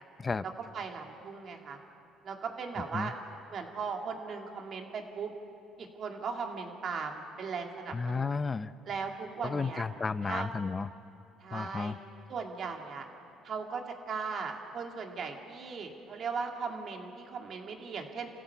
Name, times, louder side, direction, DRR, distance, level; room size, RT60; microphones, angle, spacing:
voice 1, 0.4-1.8 2.2-3.1 3.5-5.3 5.8-8.4 8.9-9.8 10.2-10.5 11.4-11.9 12.3-13.0 13.4-18.3, right 5 dB, 50° right, 2 dB, 2.6 m, -38 dB
voice 2, 7.9-8.7 9.4-10.9 11.5-12.0, left 4 dB, 25° left, 14 dB, 0.6 m, -32 dB
30.0 x 15.5 x 7.0 m, 2.6 s
cardioid pair, 105°, 0 cm